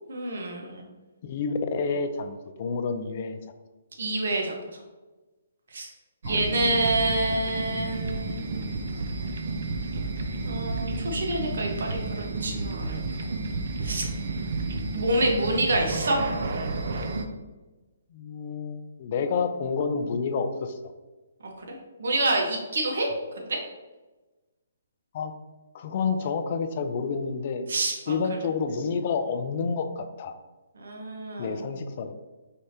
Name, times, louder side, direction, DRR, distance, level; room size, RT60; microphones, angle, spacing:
voice 1, 0.1-0.9 4.0-4.6 5.7-5.9 6.3-8.4 10.5-13.0 13.8-14.0 14.9-16.2 21.6-23.1 23.4-23.6 27.7-28.2 30.8-31.7, right 2 dB, 75° right, 1 dB, 0.9 m, -27 dB
voice 2, 1.2-3.4 6.2-6.4 18.1-20.8 25.1-25.3 25.7-27.7 28.1-30.4 31.4-32.1, left 5 dB, 40° left, 7 dB, 0.4 m, -29 dB
sound 1, 6.2-17.3, right 3 dB, 55° right, 0.5 m, -31 dB
4.7 x 3.3 x 2.8 m, 1.2 s
hypercardioid pair, 165°, 0 cm